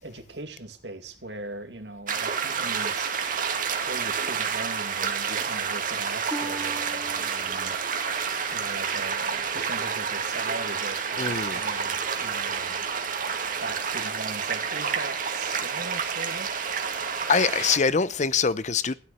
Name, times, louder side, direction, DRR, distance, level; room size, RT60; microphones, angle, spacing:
voice 1, 0.0-3.1 3.8-7.8 8.5-12.9 13.6-16.6, right 2 dB, 80° right, 2.4 m, -40 dB
sound 1, 2.1-17.8, right 6 dB, 50° right, 1.9 m, -29 dB
Harp, 6.3-10.0 10.6-11.0 11.6-11.7, right 1 dB, ahead, 2.8 m, -42 dB
voice 2, 11.2-11.6 17.3-18.9, left 5 dB, 45° left, 0.7 m, -24 dB
15.0 x 9.6 x 6.8 m
head